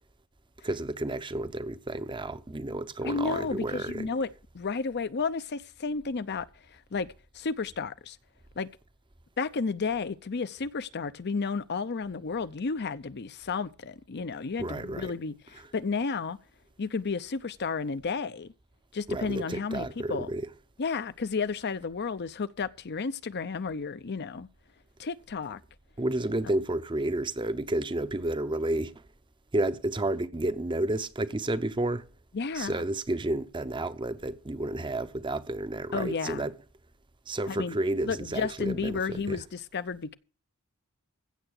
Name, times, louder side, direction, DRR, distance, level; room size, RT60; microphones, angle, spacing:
voice 1, 0.6-4.1 14.6-15.1 19.1-20.5 26.0-28.9 29.5-32.1 32.5-36.5 37.3-39.4, right 1 dB, 20° right, 0.7 m, -31 dB
voice 2, 3.0-4.3 4.5-7.1 7.3-8.2 8.6-8.7 9.4-16.4 16.8-18.5 18.9-20.3 20.8-24.5 25.0-25.6 32.3-32.8 35.9-36.5 37.5-37.7 38.0-40.2, left 4 dB, 50° left, 0.6 m, -32 dB
16.0 x 7.0 x 6.4 m
head